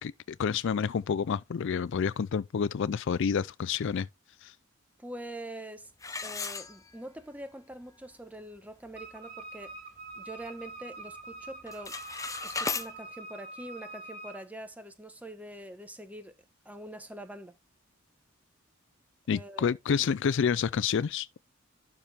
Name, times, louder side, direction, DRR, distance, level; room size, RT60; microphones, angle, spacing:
voice 1, 0.0-4.1 4.4-4.5 19.3-21.3, left 6 dB, 60° left, 0.4 m, -29 dB
voice 2, 5.0-5.9 6.2-9.7 10.1-12.0 12.4-16.3 16.6-17.5 19.3-19.7, right 1 dB, 5° right, 1.1 m, -44 dB
sound 1, 6.0-7.3 7.7-7.8 8.4-8.5 8.9-9.2 9.6-10.7 11.0-11.3 11.6-12.9, left 4 dB, 15° left, 0.7 m, -36 dB
Wind instrument woodwind instrument, 8.9-14.4, right 3 dB, 45° right, 2.7 m, -45 dB
12.0 x 4.3 x 3.4 m
head